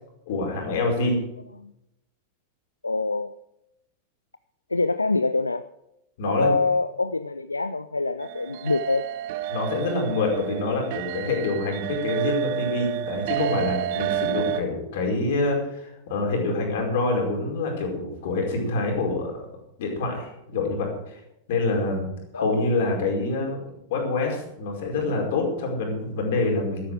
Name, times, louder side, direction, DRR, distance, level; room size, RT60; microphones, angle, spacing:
voice 1, 0.3-1.2 6.2-6.5 9.5-19.5 19.8-21.2 21.5-22.1 22.3-23.6 23.9-26.9, left 2 dB, 55° left, 1 dB, 5.0 m, -26 dB
voice 2, 2.8-3.3 4.7-5.7 6.2-9.1 22.3-22.7, left 3 dB, 80° left, 13 dB, 0.4 m, -25 dB
sound 1, 8.2-14.6, right 10 dB, 50° right, 0.7 m, -30 dB
14.0 x 12.5 x 4.9 m, 0.85 s
figure-of-eight pair, 90°, 0 cm